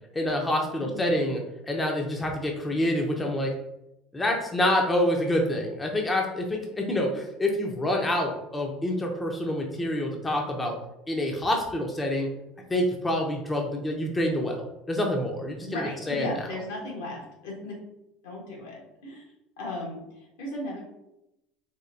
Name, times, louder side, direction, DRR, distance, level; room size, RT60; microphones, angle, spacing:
voice 1, 0.1-1.4 1.7-3.5 4.1-10.8 11.1-12.3 12.7-14.6 14.9-15.8 16.1-16.3, left 1 dB, 20° left, 1 dB, 0.7 m, -27 dB
voice 2, 0.8-1.2 15.7-17.8 18.2-19.2 19.6-20.8, left 1 dB, 75° left, -2 dB, 1.4 m, -36 dB
4.3 x 3.1 x 2.6 m, 0.86 s
hypercardioid pair, 70°, 0 cm